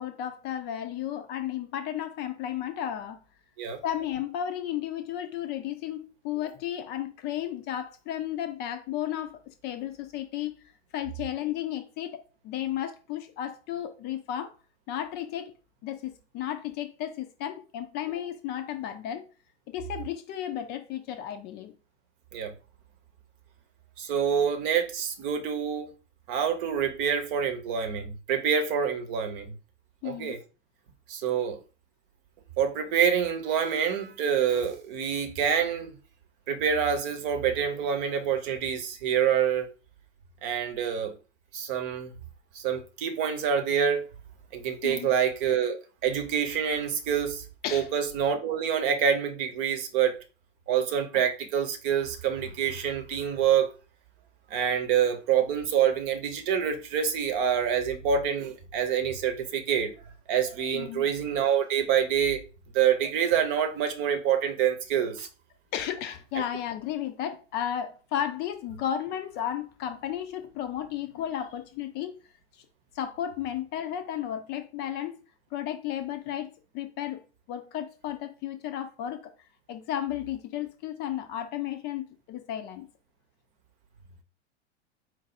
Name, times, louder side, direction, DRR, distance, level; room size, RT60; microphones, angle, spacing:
voice 1, 0.0-3.2 3.8-10.6 10.9-14.6 14.9-15.5 15.8-19.3 19.7-21.7 30.0-30.4 44.8-45.1 47.6-47.9 60.7-61.1 65.2-65.3 65.7-72.2 72.5-72.6 72.9-75.2 75.5-79.3 79.7-82.9, left 10 dB, 30° left, 0.4 m, -33 dB
voice 2, 24.0-25.9 26.3-29.5 30.0-30.4 31.1-31.6 32.6-35.9 36.5-39.7 40.4-41.1 41.5-42.1 42.5-44.1 44.5-47.4 47.7-50.1 50.7-53.7 54.5-59.9 60.3-62.4 62.7-65.3, right 8 dB, 45° right, 0.9 m, -26 dB
4.4 x 2.3 x 4.1 m
figure-of-eight pair, 90°, 35 cm